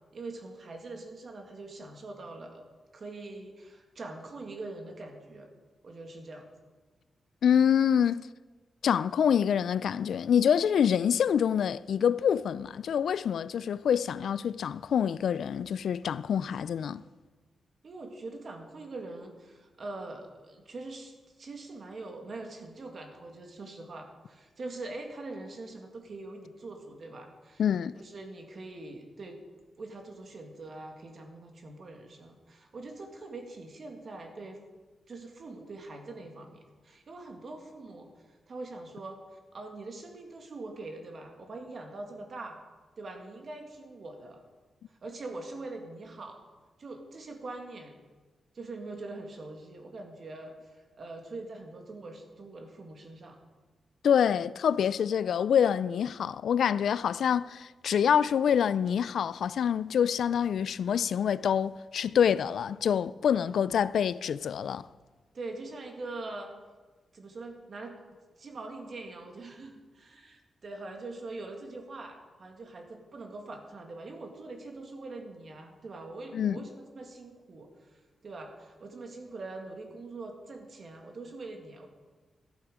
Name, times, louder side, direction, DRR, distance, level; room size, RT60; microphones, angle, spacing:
voice 1, 0.1-2.7 2.9-5.5 5.8-6.5 17.8-27.6 27.9-29.4 29.8-34.6 35.1-42.6 43.0-44.4 44.9-46.4 46.8-48.0 48.5-53.4 63.5-63.6 65.3-66.5 67.1-68.0 68.4-81.9, right 2 dB, 50° right, 2.0 m, -43 dB
voice 2, 7.4-8.3 8.8-17.0 27.6-28.0 54.0-64.9 76.3-76.6, left 8 dB, 80° left, 0.3 m, -26 dB
13.0 x 11.5 x 5.0 m
wide cardioid pair, 130°, 0 cm